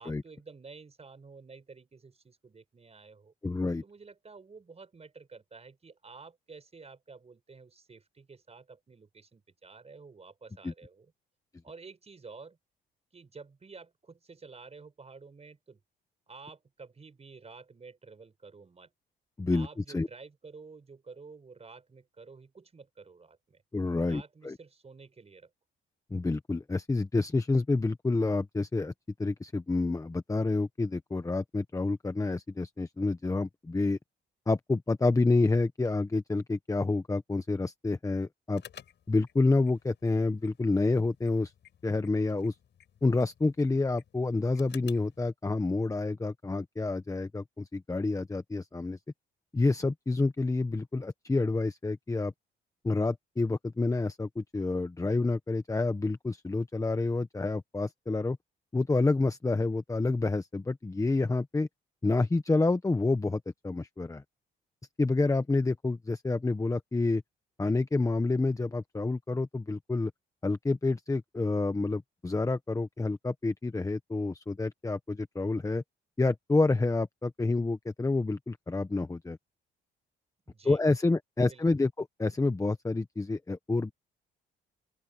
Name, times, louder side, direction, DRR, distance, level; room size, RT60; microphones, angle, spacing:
voice 1, 0.0-3.3 3.8-11.1 11.6-12.6 13.1-15.8 16.3-18.9 19.5-23.6 24.1-25.5 80.5-80.8 81.4-81.6, right 4 dB, 30° right, 5.1 m, -51 dB
voice 2, 3.4-3.8 10.6-10.7 19.4-20.1 23.7-24.5 26.1-28.9 29.2-34.0 34.5-38.6 39.1-41.5 41.8-42.6 43.0-49.0 49.5-52.3 52.8-58.4 58.7-61.7 62.0-64.2 65.0-67.2 67.6-70.1 70.4-75.8 76.2-79.4 80.6-83.9, left 3 dB, 15° left, 1.0 m, -28 dB
sound 1, 38.5-45.2, left 10 dB, 65° left, 5.5 m, -55 dB
open air
cardioid pair, 90°, 20 cm